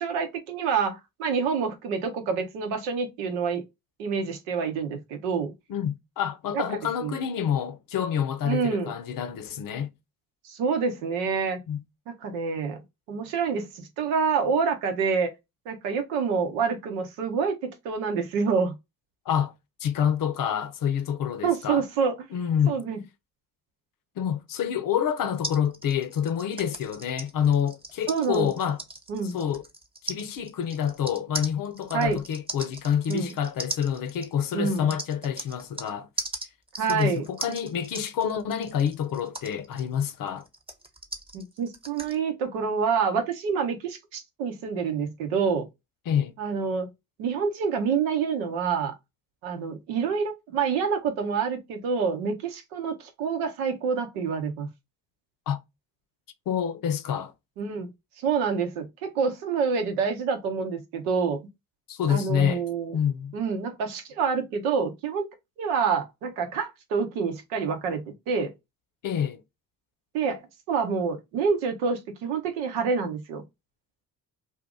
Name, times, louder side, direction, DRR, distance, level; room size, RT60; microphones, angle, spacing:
voice 1, 0.0-3.6 4.0-5.5 6.5-6.6 7.0-7.2 8.4-8.9 10.4-11.6 12.1-12.8 13.1-15.3 15.7-18.7 21.4-22.1 22.7-23.0 28.1-28.5 29.1-29.4 31.9-32.2 33.1-33.3 34.5-34.9 36.8-37.2 41.3-45.7 46.4-46.9 47.2-48.9 49.4-54.7 57.6-57.9 58.2-61.4 62.1-63.0 63.3-65.2 65.6-68.5 70.1-70.4 70.7-73.4, right 5 dB, 85° right, 0.8 m, -27 dB
voice 2, 5.7-9.9 11.7-11.8 19.3-19.5 19.8-21.8 22.3-22.8 24.2-28.8 29.3-29.6 30.0-36.1 36.8-40.4 46.1-46.3 55.5-55.6 56.5-57.3 61.9-62.6 62.9-63.3 69.0-69.4, left 8 dB, 55° left, 0.7 m, -27 dB
sound 1, 25.4-35.9 36.2-42.2, right 2 dB, 15° right, 0.8 m, -38 dB
2.7 x 2.5 x 3.6 m
hypercardioid pair, 50°, 40 cm